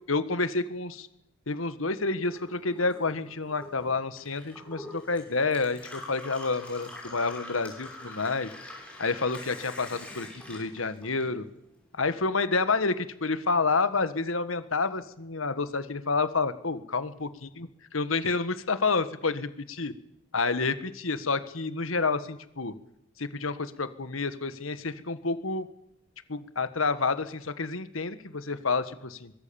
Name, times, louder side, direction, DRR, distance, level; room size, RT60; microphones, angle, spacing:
voice 1, 0.1-1.1 1.5-8.5 9.0-11.5 11.9-17.3 17.6-19.5 19.8-19.9 20.3-22.7 23.2-25.7 26.3-29.3, left 4 dB, 90° left, 12 dB, 1.6 m, -29 dB
Gurgling / Water tap faucet / Sink (filling or washing), 2.2-11.7 12.0-12.9, left 1 dB, 5° left, 6.4 m, -45 dB
23.0 x 21.5 x 7.1 m, 0.79 s
head